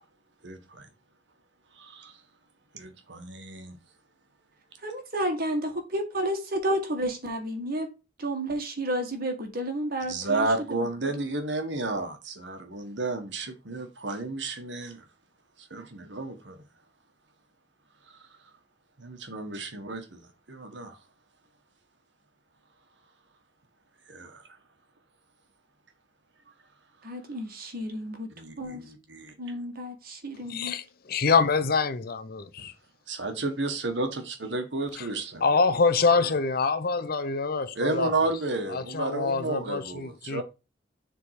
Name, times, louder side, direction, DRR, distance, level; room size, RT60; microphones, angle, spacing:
voice 1, 0.4-0.9 1.8-2.1 2.7-3.7 10.1-15.0 15.7-16.6 19.0-21.0 24.1-24.4 28.4-29.3 32.6-32.7 33.1-35.4 37.7-40.4, right 2 dB, 70° right, 1.5 m, -32 dB
voice 2, 4.8-7.9 8.2-11.3 27.0-28.3 28.6-28.8 29.4-30.8, right 1 dB, 55° right, 1.8 m, -31 dB
voice 3, 30.5-32.7 35.4-38.1 38.7-40.4, left 4 dB, 55° left, 0.7 m, -25 dB
6.9 x 3.8 x 4.8 m
head